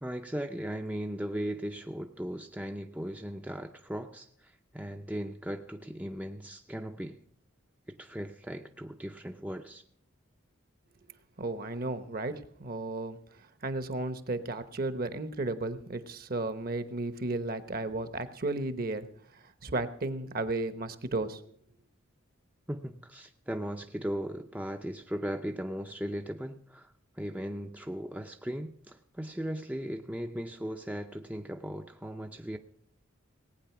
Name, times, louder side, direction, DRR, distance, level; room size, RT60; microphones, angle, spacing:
voice 1, 0.0-7.2 7.9-9.8 22.7-32.6, equal, 5° right, 0.5 m, -37 dB
voice 2, 11.4-13.2 13.6-19.1 19.6-21.4, right 2 dB, 45° right, 1.0 m, -34 dB
19.0 x 9.1 x 5.9 m
head